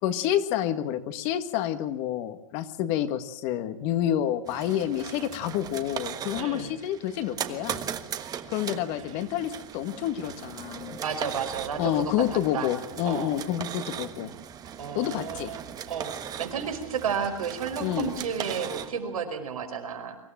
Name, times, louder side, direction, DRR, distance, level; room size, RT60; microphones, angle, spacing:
voice 1, 0.0-7.8 8.5-11.0 11.8-14.3 15.0-15.5 17.8-18.1, left 11 dB, 40° left, 10 dB, 1.7 m, -28 dB
sound 1, 4.5-18.9, right 9 dB, 20° right, 1.3 m, -38 dB
voice 2, 6.3-6.7 8.9-9.1 11.0-12.7 13.0-13.3 14.8-16.1 16.4-20.2, right 6 dB, 85° right, 4 dB, 5.1 m, -32 dB
24.5 x 14.0 x 9.0 m, 0.87 s
hypercardioid pair, 135°, 18 cm